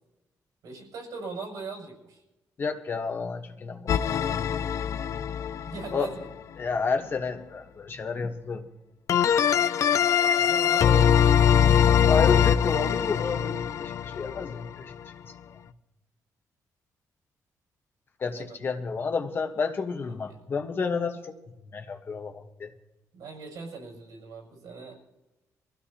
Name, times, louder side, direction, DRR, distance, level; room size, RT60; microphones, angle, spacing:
voice 1, 0.6-2.2 5.6-6.3 10.4-11.5 18.3-18.6 20.0-20.4 23.1-25.0, right 4 dB, 80° right, 1 dB, 6.5 m, -40 dB
voice 2, 2.6-3.9 5.9-6.1 6.6-8.7 12.0-14.9 15.5-15.6 18.2-21.3 21.6-22.7, left 5 dB, 35° left, 5 dB, 1.1 m, -30 dB
sound 1, 3.9-6.0 9.1-14.8, left 8 dB, 55° left, 0.5 m, -22 dB
23.5 x 15.5 x 2.9 m, 0.97 s
cardioid pair, 155°, 6 cm